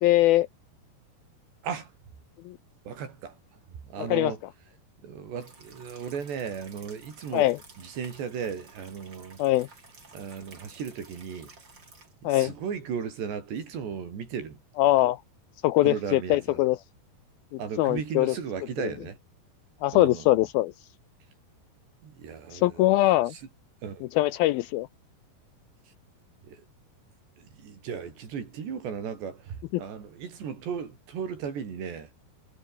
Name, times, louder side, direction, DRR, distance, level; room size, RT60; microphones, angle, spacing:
voice 1, 0.0-0.5 2.5-2.6 4.1-4.3 7.3-7.6 9.4-9.7 12.2-12.5 14.8-15.2 15.6-16.8 17.5-18.3 19.8-20.7 22.5-23.3 24.2-24.9 29.7-29.8, left 16 dB, 80° left, 2.3 m, -22 dB
voice 2, 2.9-3.4 3.7-4.4 5.0-7.5 7.8-9.4 10.1-11.5 12.2-14.6 15.8-16.6 17.6-19.2 19.9-20.3 22.0-22.9 23.3-23.4 23.8-24.1 25.9-26.0 26.4-26.7 27.4-32.1, right 7 dB, 85° right, 6.6 m, -36 dB
sound 1, 5.4-12.2 12.8-12.9 13.3-13.4 13.7-13.8, right 4 dB, 25° right, 4.5 m, -53 dB
omnidirectional pair, 4.8 m